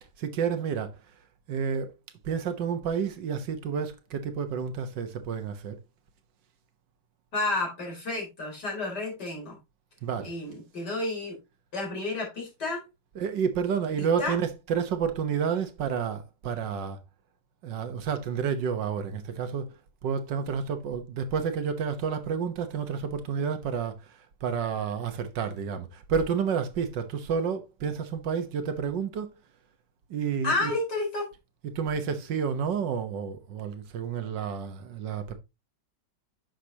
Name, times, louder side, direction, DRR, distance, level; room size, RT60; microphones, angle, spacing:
voice 1, 0.2-1.0 1.5-1.9 2.2-5.8 10.0-10.3 13.2-17.0 17.6-29.3 30.1-30.7 31.6-35.3, right 6 dB, 80° right, 1.7 m, -30 dB
voice 2, 7.3-9.6 10.2-11.4 11.7-12.8 14.2-14.4 30.4-31.3, left 2 dB, 65° left, 4.8 m, -31 dB
9.8 x 6.4 x 2.8 m
omnidirectional pair, 1.9 m